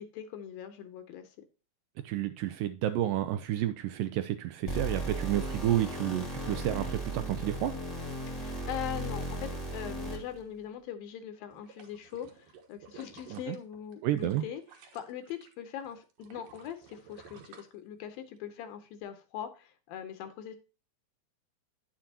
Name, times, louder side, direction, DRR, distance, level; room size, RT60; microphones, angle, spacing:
voice 1, 0.0-1.4 8.3-14.6 14.9-20.6, left 9 dB, 75° left, 2.4 m, -41 dB
voice 2, 2.0-7.7 13.3-13.6 14.0-14.5, right 12 dB, 85° right, 1.9 m, -30 dB
sound 1, 4.7-10.4, right 1 dB, 20° left, 1.0 m, -36 dB
sound 2, 11.4-15.5 15.9-18.4 18.8-18.9, right 6 dB, 65° right, 2.7 m, -54 dB
9.8 x 7.2 x 2.8 m
omnidirectional pair, 4.4 m